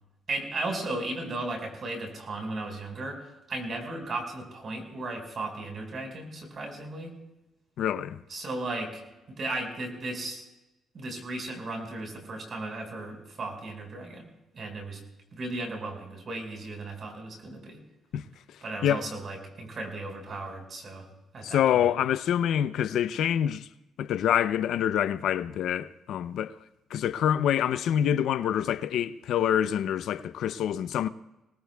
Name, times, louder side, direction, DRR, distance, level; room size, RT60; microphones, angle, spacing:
voice 1, 0.3-7.1 8.3-9.0 9.3-10.4 10.9-14.2 14.5-15.0 15.3-17.8 18.6-21.1 21.3-21.9, right 2 dB, 50° right, 5.0 m, -35 dB
voice 2, 7.8-8.2 18.1-18.2 18.8-19.0 21.4-23.7 24.0-26.5 26.9-31.1, left 10 dB, 80° left, 0.5 m, -26 dB
25.5 x 19.0 x 2.3 m
cardioid pair, 90°, 0 cm